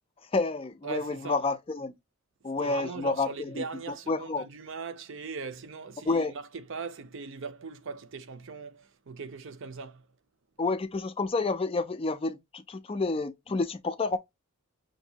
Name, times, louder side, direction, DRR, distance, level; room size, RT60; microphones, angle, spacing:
voice 1, 0.3-1.9 2.4-3.6 4.1-4.5 6.1-6.3 10.6-14.2, left 3 dB, 25° left, 0.4 m, -29 dB
voice 2, 0.8-1.4 2.6-10.1, right 5 dB, 55° right, 0.5 m, -40 dB
5.9 x 2.6 x 2.7 m
head